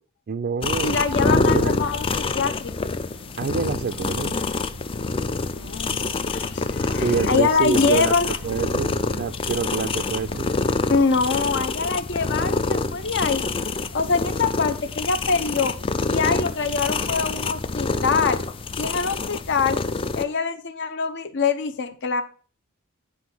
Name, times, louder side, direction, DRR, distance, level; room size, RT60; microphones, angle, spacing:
voice 1, 0.3-1.7 3.4-4.4 6.9-10.6, right 5 dB, 45° right, 8 dB, 0.4 m, -27 dB
sound 1, 0.6-20.3, left 3 dB, 25° left, 0.4 m, -26 dB
voice 2, 0.8-2.7 5.5-8.3 10.9-13.4 13.9-15.7 16.1-18.4 18.7-19.8 20.2-22.2, left 5 dB, 60° left, 9 dB, 0.7 m, -24 dB
sound 2, 1.3-19.9, left 1 dB, 80° left, 1.2 m, -45 dB
9.3 x 3.7 x 6.0 m, 0.41 s
head